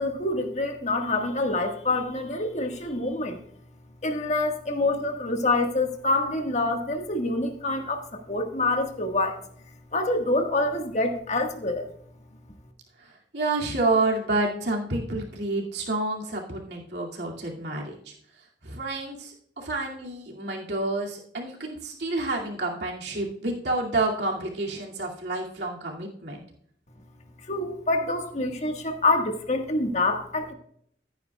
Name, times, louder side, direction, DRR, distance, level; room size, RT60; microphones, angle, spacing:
voice 1, 0.0-3.4 4.0-8.0 8.3-9.4 9.9-11.9 27.5-30.5, left 2 dB, 40° left, 4 dB, 1.5 m, -26 dB
voice 2, 13.0-18.1 18.6-26.4, right 2 dB, 75° right, -1 dB, 2.3 m, -29 dB
15.0 x 9.4 x 2.3 m, 0.66 s
head